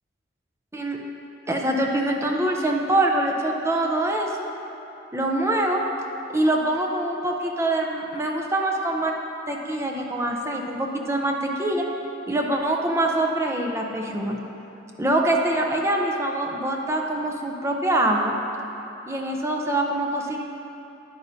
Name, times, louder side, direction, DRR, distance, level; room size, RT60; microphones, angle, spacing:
voice 1, 1.5-4.5 5.1-5.8 6.3-9.1 9.5-11.8 12.3-14.4 15.0-18.3 19.1-20.4, right 1 dB, 15° right, 0 dB, 0.6 m, -24 dB
9.6 x 9.2 x 2.7 m, 3.0 s
head